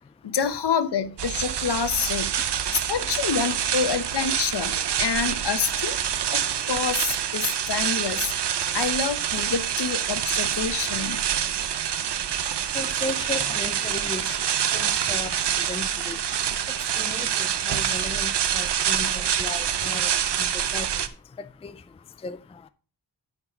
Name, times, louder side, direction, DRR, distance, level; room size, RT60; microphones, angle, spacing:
voice 1, 0.2-2.4 2.7-6.0 6.3-8.3 8.7-11.3, left 7 dB, 75° left, 1.1 m, -27 dB
sound 1, 1.2-21.1, right 9 dB, 85° right, 0.8 m, -26 dB
voice 2, 12.7-14.4 14.7-15.3 15.7-16.2 17.0-19.1 19.4-20.1 20.4-20.5 20.7-20.9 21.6-21.7 22.2-22.4, left 3 dB, 15° left, 0.3 m, -35 dB
9.7 x 4.6 x 5.4 m
wide cardioid pair, 155°, 40 cm